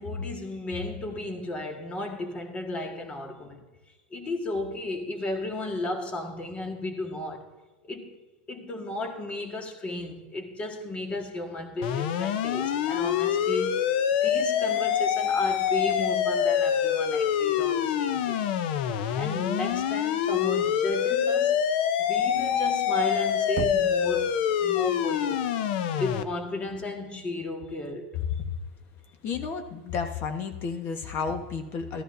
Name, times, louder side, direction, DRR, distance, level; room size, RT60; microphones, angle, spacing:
voice 1, 0.0-3.6 4.1-7.4 7.8-8.1 8.5-18.5 19.1-21.6 22.1-25.5 25.9-28.1, left 2 dB, 25° left, 1.5 m, -34 dB
sound 1, 11.8-26.2, left 9 dB, 75° left, 0.6 m, -25 dB
Knock, 23.6-24.5, right 12 dB, 40° right, 0.4 m, -36 dB
voice 2, 29.2-32.0, left 5 dB, 45° left, 1.3 m, -32 dB
13.5 x 13.5 x 2.6 m
supercardioid pair, 125°, 5 cm